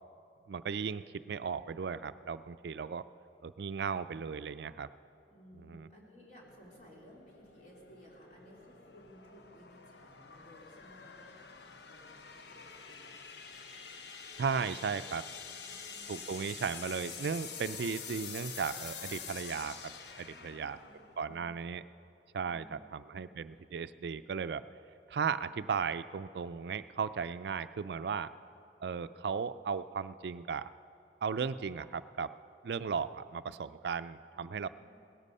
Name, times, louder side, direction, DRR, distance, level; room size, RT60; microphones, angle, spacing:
voice 1, 0.5-3.0 3.4-4.9 5.7-5.9 14.4-15.2 16.1-19.8 20.2-20.8 21.2-21.8 22.3-24.6 25.1-28.3 28.8-30.7 31.2-32.3 32.6-34.7, right 6 dB, 65° right, 13 dB, 0.4 m, -36 dB
voice 2, 5.3-13.2 15.4-16.2 20.3-21.6 22.4-23.3 34.3-34.7, equal, 45° left, -3 dB, 3.4 m, -58 dB
sound 1, 6.4-21.8, left 6 dB, 65° left, 0.8 m, -47 dB
18.0 x 13.5 x 5.5 m, 2.7 s
head